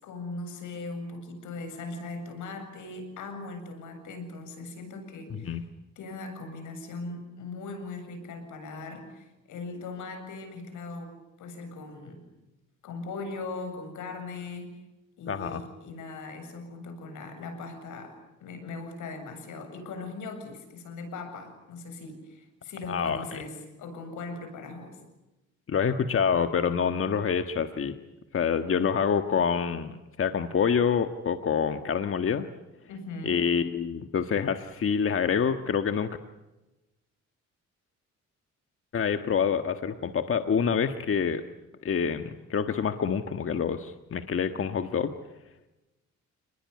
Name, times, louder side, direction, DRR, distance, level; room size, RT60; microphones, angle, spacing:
voice 1, 0.0-5.6 6.0-11.1 11.4-12.2 12.8-14.7 15.2-25.0 32.9-33.4, left 3 dB, 80° left, 7 dB, 7.6 m, -39 dB
voice 2, 15.3-15.6 22.9-23.4 25.7-28.0 28.3-32.5 33.2-36.1 38.9-41.4 41.8-45.1, left 7 dB, 45° left, 8 dB, 1.5 m, -27 dB
29.5 x 20.5 x 9.6 m, 1.0 s
cardioid pair, 90°, 30 cm